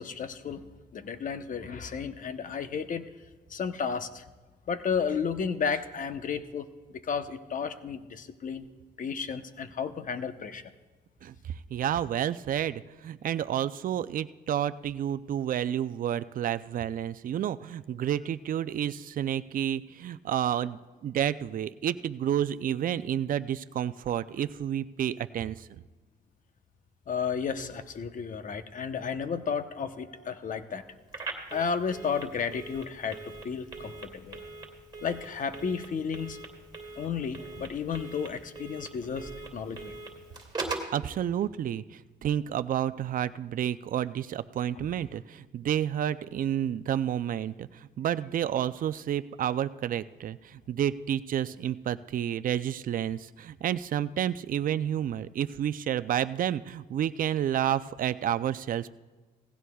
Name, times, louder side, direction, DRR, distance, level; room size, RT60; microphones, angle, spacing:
voice 1, 0.0-3.1 3.5-4.2 4.7-8.7 9.0-10.7 27.1-30.8 31.5-34.4 35.0-36.4 37.0-39.9 44.8-44.9, left 6 dB, 50° left, 10 dB, 0.9 m, -33 dB
voice 2, 11.2-25.8 40.9-58.9, right 10 dB, 50° right, 13 dB, 0.5 m, -30 dB
Telephone, 31.1-41.0, right 3 dB, 25° right, 2.5 m, -41 dB
18.0 x 16.0 x 2.3 m, 1.3 s
cardioid pair, 90°, 18 cm